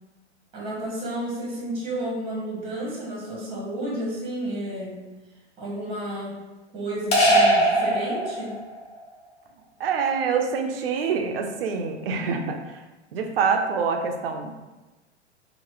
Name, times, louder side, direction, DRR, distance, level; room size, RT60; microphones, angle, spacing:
voice 1, 0.5-5.0 5.6-6.4 6.7-8.6, right 1 dB, 15° right, -4 dB, 0.9 m, -31 dB
sound 1, 7.1-8.8, right 1 dB, 20° left, 0.6 m, -20 dB
voice 2, 9.8-12.8 13.1-14.6, right 5 dB, 55° right, 4 dB, 0.5 m, -26 dB
2.9 x 2.1 x 3.0 m, 1.1 s
figure-of-eight pair, 110°, 35 cm